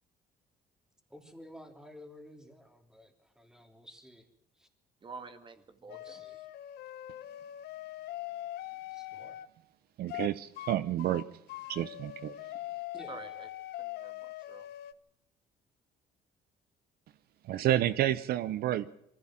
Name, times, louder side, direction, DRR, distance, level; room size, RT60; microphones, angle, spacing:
voice 1, 1.1-4.3 4.6-4.7 5.9-6.4 8.9-9.4 12.9-13.3, left 1 dB, 5° right, 5 dB, 3.2 m, -52 dB
voice 2, 5.0-6.5 13.1-14.7, right 4 dB, 30° right, 8 dB, 2.0 m, -49 dB
sound 1, 5.9-9.5 10.1-10.3 10.6-10.7 11.0-14.9, left 14 dB, 80° left, 1.0 m, -42 dB
voice 3, 10.0-11.2 11.7-12.3 17.4-18.9, right 12 dB, 70° right, 15 dB, 0.8 m, -30 dB
23.5 x 15.5 x 7.6 m, 0.79 s
cardioid pair, 130°, 17 cm